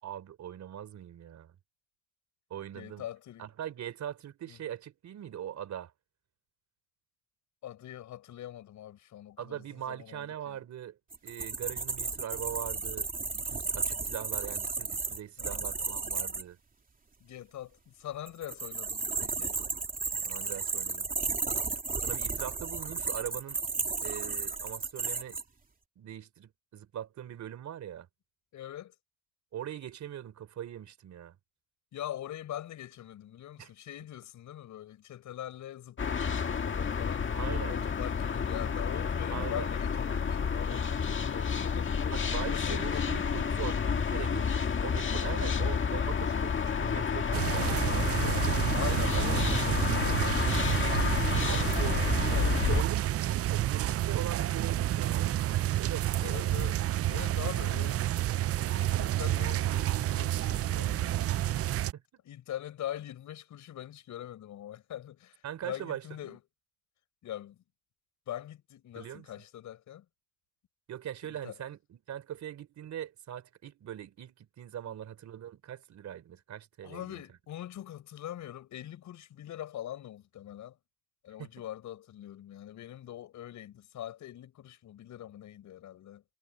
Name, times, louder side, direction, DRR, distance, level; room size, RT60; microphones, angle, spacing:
voice 1, 0.0-1.6 2.5-3.1 3.4-5.9 9.4-16.6 20.2-21.1 22.0-23.6 24.0-25.4 26.0-28.1 29.5-31.4 33.6-33.7 37.3-37.8 39.3-39.7 40.7-40.9 42.1-48.4 51.5-55.4 55.8-56.7 61.9-62.0 65.4-66.4 69.0-69.3 70.9-77.2 81.4-81.5, right 10 dB, 65° right, 3.7 m, -41 dB
voice 2, 2.7-3.5 4.5-4.6 7.6-10.6 15.4-15.6 17.2-19.6 23.8-23.9 28.5-28.9 31.9-37.3 37.7-42.1 42.5-43.3 43.5-43.7 48.7-50.9 56.2-58.1 58.6-61.2 62.2-66.4 67.2-67.6 68.3-70.0 71.3-71.5 76.8-80.7 81.2-86.2, left 12 dB, 75° left, 6.5 m, -43 dB
sound 1, 11.1-16.4 18.3-25.4, right 4 dB, 30° right, 3.1 m, -34 dB
sound 2, 36.0-52.8, left 6 dB, 40° left, 1.8 m, -30 dB
sound 3, 47.3-61.9, right 13 dB, 50° right, 0.5 m, -29 dB
cardioid pair, 90°, 30 cm